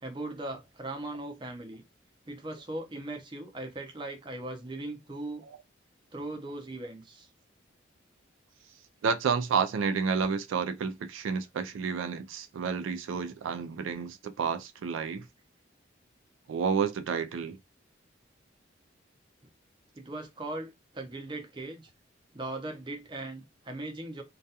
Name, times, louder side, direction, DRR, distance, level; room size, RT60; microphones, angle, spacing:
voice 1, 0.0-1.8 2.2-5.4 6.1-7.3 19.9-21.9 22.3-24.2, right 2 dB, 25° right, 0.5 m, -39 dB
voice 2, 9.0-15.3 16.5-17.6, right 6 dB, 85° right, 0.3 m, -30 dB
2.3 x 2.2 x 2.7 m
head